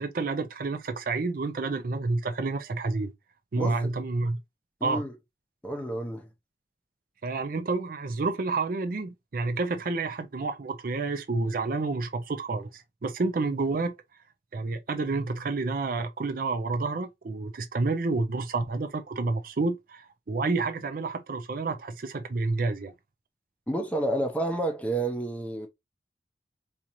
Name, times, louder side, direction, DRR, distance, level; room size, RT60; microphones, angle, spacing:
voice 1, 0.0-3.1 3.5-4.4 4.8-5.0 7.2-13.9 14.5-22.9, right 3 dB, 50° right, 0.4 m, -29 dB
voice 2, 4.8-5.1 5.6-6.3 23.7-25.7, right 1 dB, 5° left, 0.6 m, -30 dB
4.1 x 2.5 x 2.9 m
head